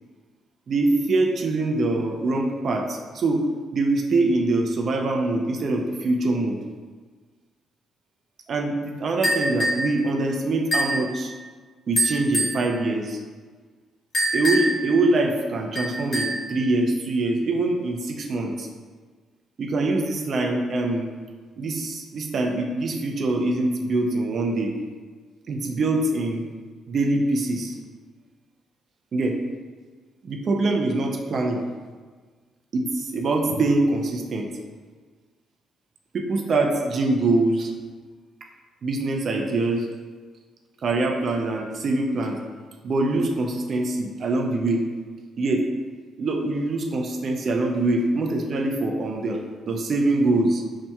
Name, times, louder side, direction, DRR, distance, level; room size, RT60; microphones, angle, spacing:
voice 1, 0.7-3.4 3.7-6.6 8.5-11.3 11.9-13.2 14.3-18.7 19.6-21.1 21.6-24.7 25.5-26.4 26.9-27.8 29.1-29.4 30.2-31.6 32.7-34.5 36.1-37.7 38.8-39.9 40.8-42.4 42.8-44.8 45.4-45.6 46.2-49.4 49.7-50.6, right 2 dB, 55° right, 2 dB, 0.5 m, -24 dB
sound 1, 9.2-9.9 10.7-11.0 12.0-12.6 14.1-14.9 15.8-16.5, right 1 dB, 45° left, 1.2 m, -24 dB
5.8 x 2.7 x 2.2 m, 1.5 s
cardioid pair, 90°, 0 cm